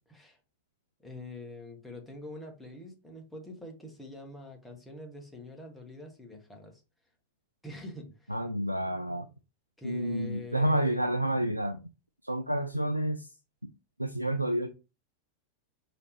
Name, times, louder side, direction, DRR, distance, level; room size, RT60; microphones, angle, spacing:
voice 1, 0.1-0.4 1.0-6.8 7.6-8.4 9.8-11.1, left 2 dB, 5° left, 1.2 m, -45 dB
voice 2, 8.3-9.3 9.8-11.8 12.2-13.3 14.0-14.7, right 1 dB, 90° right, 0.3 m, -29 dB
5.0 x 2.9 x 3.2 m
figure-of-eight pair, 90°, 0 cm